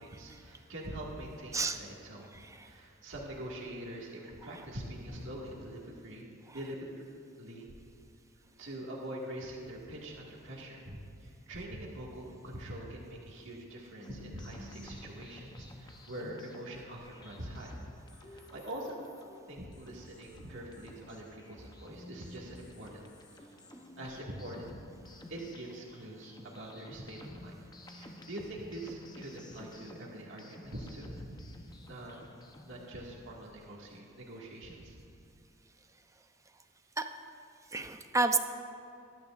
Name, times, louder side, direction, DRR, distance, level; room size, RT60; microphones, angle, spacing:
voice 1, 0.0-2.3 2.5-6.3 6.5-7.1 7.4-7.7 8.6-17.8 18.1-19.0 19.5-23.0 23.4-23.5 24.0-24.8 25.1-31.4 31.9-32.2 32.6-35.0, right 1 dB, 65° right, -3 dB, 2.0 m, -44 dB
voice 2, 2.4-2.7 37.0-37.1 37.7-38.4, right 3 dB, 15° right, 7 dB, 0.6 m, -30 dB
sound 1, 14.0-32.9, left 1 dB, 20° left, 0.8 m, -53 dB
20.5 x 12.0 x 2.5 m, 2.6 s
head